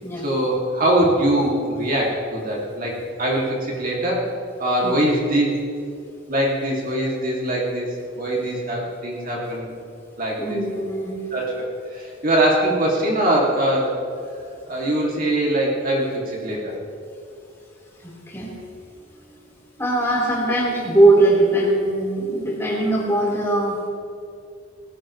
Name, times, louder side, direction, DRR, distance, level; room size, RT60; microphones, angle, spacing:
voice 1, 0.2-4.3 4.6-5.5 6.3-7.9 8.2-9.7 10.2-10.6 11.3-11.7 11.9-14.0 14.7-16.7, right 1 dB, 45° right, -3 dB, 2.5 m, -22 dB
voice 2, 10.4-11.1 18.0-18.5 19.8-23.8, right 2 dB, 15° left, -5 dB, 4.2 m, -20 dB
20.0 x 16.5 x 3.2 m, 2.5 s
head